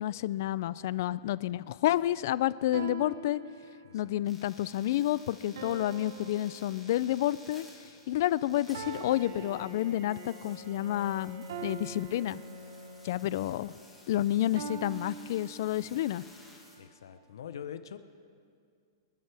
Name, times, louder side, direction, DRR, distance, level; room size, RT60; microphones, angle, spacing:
voice 1, 0.0-3.4 3.9-7.6 8.1-12.4 13.0-13.7 14.1-16.2, left 13 dB, 45° left, 18 dB, 0.3 m, -30 dB
sound 1, 0.7-1.2 2.7-4.2 5.6-7.4 8.7-10.3 11.5-13.1 14.6-16.1, right 6 dB, 65° right, 1.0 m, -44 dB
voice 2, 3.8-4.2 16.8-18.0, left 8 dB, 85° left, 11 dB, 0.8 m, -44 dB
sound 2, 4.2-16.8, left 1 dB, ahead, 1.9 m, -56 dB
Bowed string instrument, 8.6-14.1, left 1 dB, 40° right, 1.5 m, -48 dB
28.0 x 10.5 x 3.4 m, 2.2 s
supercardioid pair, 170°, 2 cm